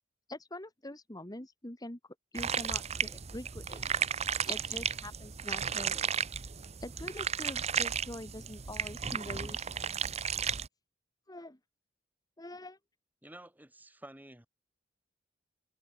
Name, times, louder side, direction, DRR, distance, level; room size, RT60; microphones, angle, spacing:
voice 1, 0.3-2.0 2.3-3.9 4.4-6.1 6.8-9.8 11.3-11.6 12.4-12.8, left 1 dB, 20° left, 2.0 m, -44 dB
sound 1, 2.3-10.7, right 7 dB, 35° right, 0.8 m, -34 dB
voice 2, 13.2-14.5, right 1 dB, 10° right, 1.8 m, -51 dB
head